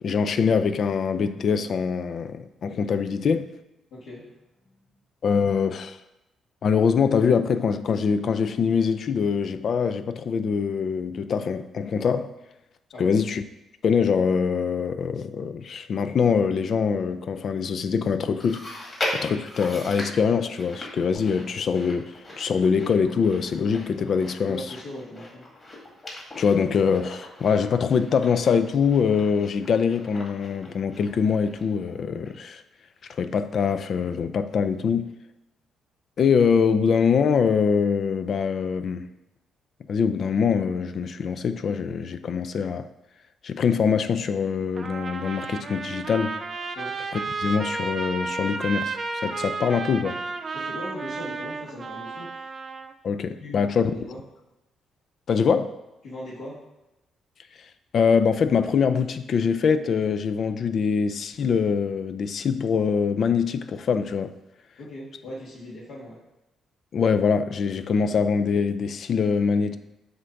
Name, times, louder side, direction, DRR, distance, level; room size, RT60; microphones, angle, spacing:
voice 1, 0.0-3.5 5.2-6.0 6.6-12.3 13.0-13.4 13.8-18.6 19.1-24.7 26.4-32.6 33.1-35.1 36.2-39.1 39.9-42.9 43.4-46.4 47.1-50.2 53.0-53.9 55.3-55.8 57.9-64.3 66.9-69.8, left 6 dB, 55° left, 0.4 m, -23 dB
voice 2, 3.9-4.4 12.9-13.1 24.5-25.5 46.7-47.0 50.5-52.5 53.4-54.2 56.0-56.6 64.8-66.2, left 1 dB, 75° left, 1.6 m, -39 dB
Chewing mastication, 18.4-31.9 32.3-32.4 33.2-33.3, left 1 dB, 30° left, 1.9 m, -39 dB
Trumpet, 44.8-52.9, right 4 dB, 40° right, 0.5 m, -32 dB
7.7 x 2.6 x 5.7 m
cardioid pair, 90°, 0 cm